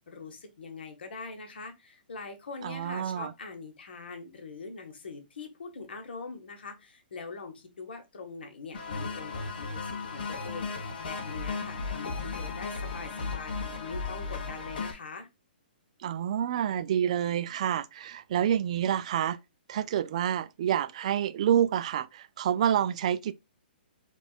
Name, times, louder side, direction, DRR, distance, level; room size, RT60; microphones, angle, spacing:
voice 1, 0.0-15.3, left 4 dB, 85° left, 1.2 m, -43 dB
voice 2, 2.6-3.3 16.0-19.4 19.7-23.3, right 10 dB, 40° right, 0.3 m, -28 dB
sound 1, 8.7-14.9, left 4 dB, 60° left, 1.1 m, -35 dB
5.2 x 2.4 x 2.4 m
hypercardioid pair, 170°, 5 cm